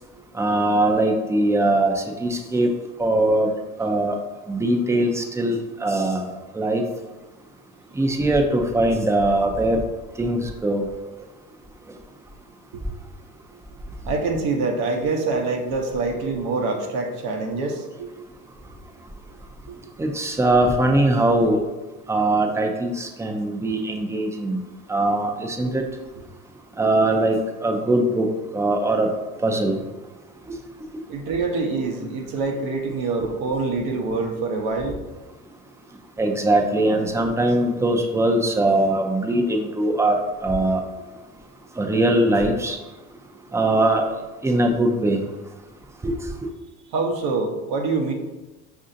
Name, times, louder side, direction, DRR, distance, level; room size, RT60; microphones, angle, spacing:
voice 1, 0.3-2.7 3.0-3.5 3.8-4.2 4.5-6.3 6.5-6.8 8.0-9.8 10.2-10.8 20.0-21.6 22.1-24.6 24.9-25.8 26.8-28.3 28.5-29.1 29.4-29.8 36.2-40.8 41.8-42.8 43.5-44.0 44.4-45.2 46.0-46.1, right 1 dB, 5° right, 3 dB, 0.4 m, -21 dB
voice 2, 14.0-18.1 19.7-19.8 31.1-35.0 46.9-48.1, right 3 dB, 60° right, 2 dB, 0.8 m, -25 dB
5.4 x 2.6 x 2.6 m, 1.1 s
supercardioid pair, 85°, 41 cm